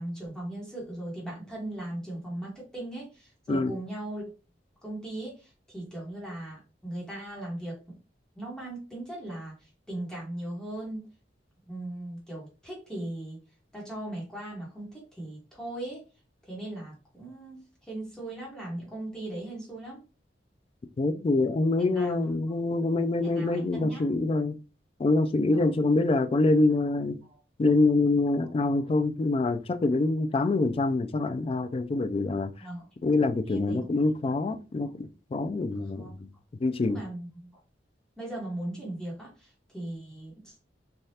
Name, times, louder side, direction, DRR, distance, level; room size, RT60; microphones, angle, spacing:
voice 1, 0.0-4.2 4.8-8.0 8.3-11.0 11.6-13.4 13.7-16.0 16.4-20.0 21.8-22.3 23.2-24.0 25.5-25.7 27.2-27.4 28.4-28.5 28.8-28.9 32.6-32.9 33.4-34.0 34.8-34.9 35.9-36.1 36.8-37.5 38.2-40.6, right 1 dB, 5° left, 1.1 m, -38 dB
voice 2, 21.0-24.6 25.0-27.2 27.6-32.5 33.0-36.1 36.6-37.0, left 2 dB, 35° left, 0.3 m, -25 dB
3.3 x 2.3 x 2.7 m
head